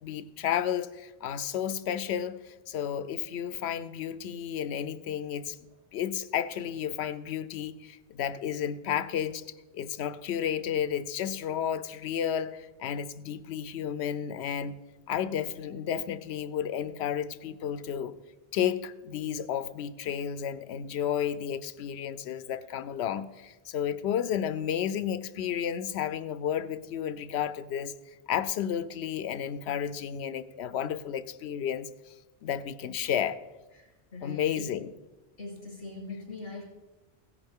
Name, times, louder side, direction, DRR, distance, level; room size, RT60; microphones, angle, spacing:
voice 1, 0.0-5.6 5.9-9.4 9.7-14.8 15.1-18.1 18.5-27.9 28.3-32.1 32.4-33.4 34.2-34.9, left 9 dB, 85° left, 14 dB, 0.9 m, -32 dB
voice 2, 33.7-34.7 35.4-36.6, left 3 dB, 65° left, -2 dB, 3.5 m, -42 dB
16.0 x 9.9 x 3.6 m, 1.1 s
omnidirectional pair, 1.1 m